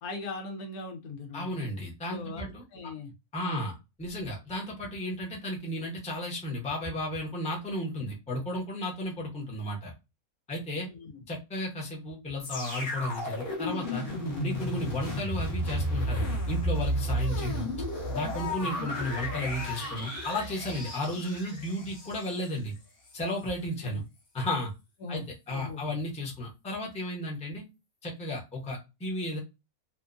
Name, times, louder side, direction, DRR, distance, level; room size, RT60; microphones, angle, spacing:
voice 1, 0.0-1.6 2.1-3.1 3.4-3.6 10.8-11.2 23.8-24.0 25.0-25.9, left 3 dB, 85° left, 5 dB, 1.1 m, -40 dB
voice 2, 1.3-2.6 3.3-3.7 4.0-9.9 10.5-10.9 11.3-14.1 14.4-17.7 18.1-22.7 23.1-24.0 24.3-24.7 25.1-27.6 28.0-29.4, left 1 dB, 5° left, -1 dB, 0.5 m, -34 dB
sound 1, 12.4-22.5 23.1-23.2, equal, 45° left, 0.8 m, -33 dB
2.8 x 2.2 x 2.5 m, 0.25 s
omnidirectional pair, 1.5 m